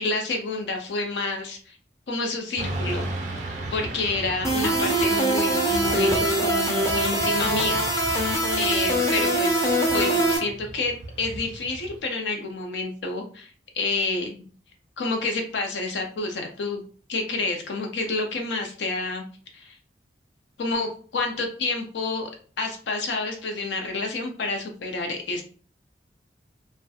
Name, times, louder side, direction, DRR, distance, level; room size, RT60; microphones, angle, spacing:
voice 1, 0.0-1.8 2.1-3.4 3.7-7.9 8.6-14.5 15.0-16.8 17.1-19.2 19.5-19.8 20.6-22.3 22.6-25.4, left 3 dB, 75° left, 2 dB, 0.4 m, -29 dB
Motorcycle / Traffic noise roadway noise, 2.6-12.0, right 2 dB, 40° right, 0.4 m, -36 dB
sound 1, 4.4-10.4, right 1 dB, 15° left, 0.4 m, -23 dB
2.3 x 2.0 x 2.7 m, 0.42 s
head